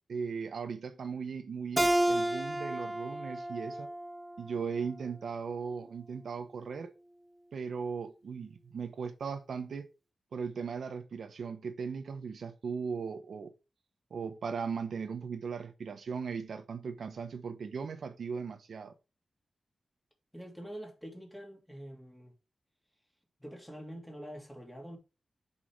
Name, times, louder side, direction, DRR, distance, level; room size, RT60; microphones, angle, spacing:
voice 1, 0.1-3.9 4.4-6.9 7.5-9.9 10.3-13.5 14.1-18.9, right 5 dB, 80° right, 1.0 m, -38 dB
Keyboard (musical), 1.8-5.0, right 1 dB, 10° right, 0.4 m, -31 dB
voice 2, 20.3-22.3 23.4-25.0, equal, 5° left, 2.9 m, -45 dB
6.4 x 5.6 x 4.6 m
wide cardioid pair, 110°, 0 cm